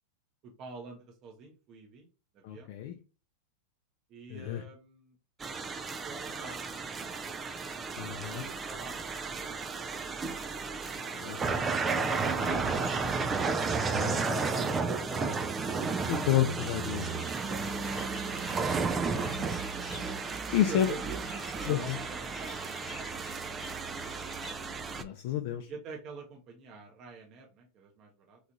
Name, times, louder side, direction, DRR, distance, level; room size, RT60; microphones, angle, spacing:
voice 1, 0.4-2.1 2.3-2.7 4.1-5.1 5.9-7.3 8.3-9.0 9.2-9.8 11.0-11.9 20.6-21.2 21.5-23.9 25.7-28.4, right 4 dB, 35° right, 1 dB, 0.8 m, -47 dB
voice 2, 2.4-3.0 4.3-4.6 8.0-8.4 11.1-11.4 12.4-12.7 13.9-14.5 16.1-17.3 19.1-19.7 19.9-20.0 20.5-20.9 21.6-22.0 25.0-25.7, left 11 dB, 55° left, 4 dB, 0.5 m, -31 dB
sound 1, 5.4-25.0, right 4 dB, 15° right, 0.3 m, -33 dB
sound 2, 16.5-24.5, left 1 dB, 5° left, 1.1 m, -49 dB
3.0 x 2.4 x 3.9 m, 0.31 s
supercardioid pair, 140°, 0 cm